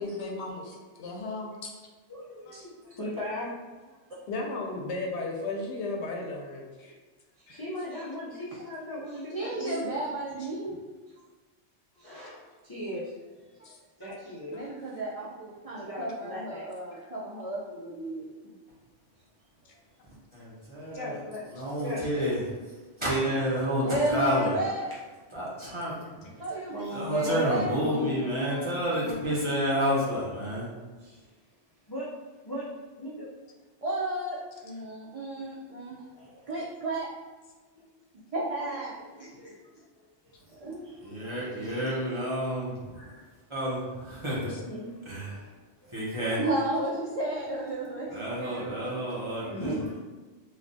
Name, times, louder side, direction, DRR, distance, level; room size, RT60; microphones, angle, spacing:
voice 1, 0.0-1.7 2.4-2.5 4.3-6.9 7.5-7.6 10.4-10.5 13.6-13.8 16.9-17.0 44.5-44.6, left 2 dB, 70° left, 0 dB, 0.8 m, -35 dB
voice 2, 2.1-3.5 3.8-4.1 7.3-10.0 10.4-10.8 11.9-14.7 15.8-16.7 19.7-19.8 20.9-21.5 21.8-22.0 26.1-28.3 31.0-31.6 31.9-32.1 32.4-32.7 33.0-33.3 34.6-34.7 35.4-35.5 36.0-36.5 38.7-39.8 40.2-40.5 40.8-41.9 43.0-43.2 44.7-45.5 45.8-46.0 48.2-48.5 49.1-50.0, left 1 dB, 35° left, -9 dB, 0.3 m, -40 dB
voice 3, 9.3-10.8 14.5-18.3 23.8-24.9 26.4-26.8 27.1-29.3 33.8-34.4 34.6-35.9 36.5-37.1 38.3-39.3 40.6-40.9 46.4-48.9 49.4-49.7, right 1 dB, 70° right, -6 dB, 0.3 m, -33 dB
voice 4, 20.3-21.2 21.5-24.6 25.3-25.9 26.9-30.7 41.0-42.7 43.5-44.5 45.1-45.4 45.9-46.4 48.1-49.7, equal, 30° right, -8 dB, 0.7 m, -30 dB
3.3 x 2.3 x 2.6 m, 1.3 s
omnidirectional pair, 1.2 m